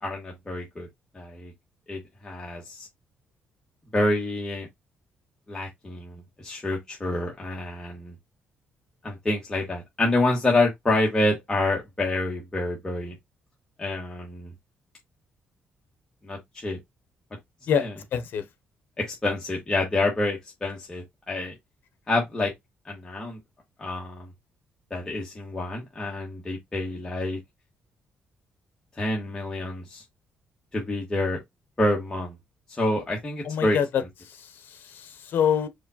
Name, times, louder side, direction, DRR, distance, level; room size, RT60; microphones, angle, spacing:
voice 1, 0.0-0.9 1.1-1.5 1.9-2.9 3.9-4.7 5.5-8.1 9.0-13.1 13.8-14.5 16.2-16.8 17.7-17.9 19.0-21.5 22.1-22.5 22.8-23.4 23.8-24.3 24.9-27.4 29.0-30.0 30.7-31.4 31.8-32.3 32.7-33.8, left 2 dB, 15° left, 1.3 m, -27 dB
voice 2, 17.7-18.5 33.4-35.7, left 8 dB, 60° left, 0.9 m, -27 dB
4.9 x 2.3 x 4.1 m
cardioid pair, 155°, 4 cm